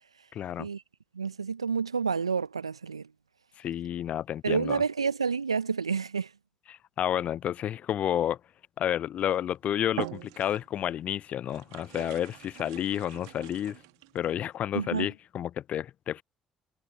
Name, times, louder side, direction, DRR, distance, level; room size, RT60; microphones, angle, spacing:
voice 1, 0.3-0.7 3.6-4.8 6.7-8.4 8.8-13.8 14.1-16.2, left 10 dB, 50° left, 0.5 m, -30 dB
voice 2, 1.1-3.1 4.4-6.3 14.7-15.1, right 5 dB, 85° right, 1.2 m, -29 dB
sound 1, 9.2-9.5 9.9-10.9 11.5-14.2, right 25 dB, 70° right, 2.1 m, -42 dB
figure-of-eight pair, 50°, 3 cm